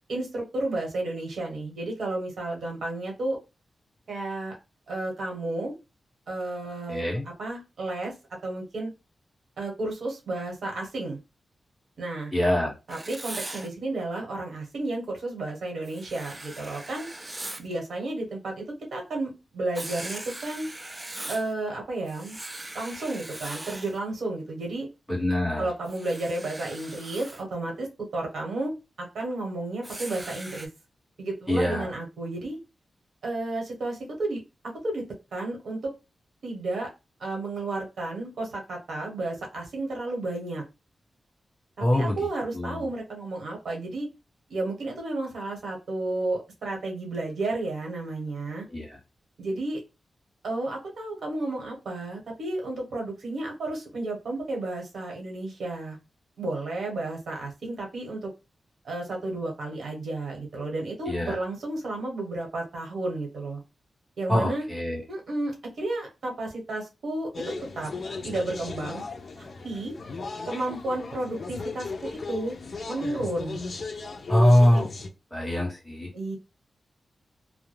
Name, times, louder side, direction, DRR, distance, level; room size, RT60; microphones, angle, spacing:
voice 1, 0.1-3.4 4.1-4.6 4.9-5.7 6.3-8.1 8.4-8.9 9.6-11.2 12.0-12.3 12.9-17.1 17.6-20.7 21.3-22.4 22.7-24.9 25.6-30.7 31.2-32.6 33.2-35.0 35.3-35.9 36.4-36.9 37.2-40.6 41.8-44.1 44.5-48.6 49.4-49.8 50.4-56.0 56.4-58.3 58.8-63.6 64.2-64.6 65.1-67.9 68.2-69.0 69.4-69.9 70.4-72.6 72.9-73.6 76.1-76.4, right 2 dB, 80° right, 0 dB, 1.1 m, -32 dB
voice 2, 6.9-7.2 12.3-12.7 25.1-25.7 31.5-31.9 41.8-42.2 42.5-42.8 48.7-49.0 61.1-61.4 64.3-65.0 74.3-74.9 75.3-76.1, left 1 dB, 5° left, -4 dB, 1.2 m, -23 dB
Writing, 12.9-13.7 15.8-17.7 19.7-21.5 22.1-24.0 25.8-27.4 29.8-30.7, right 1 dB, 20° right, 0.3 m, -40 dB
sound 1, 67.3-75.1, left 3 dB, 55° left, 0.4 m, -36 dB
2.3 x 2.1 x 3.1 m, 0.27 s
wide cardioid pair, 120°, 0 cm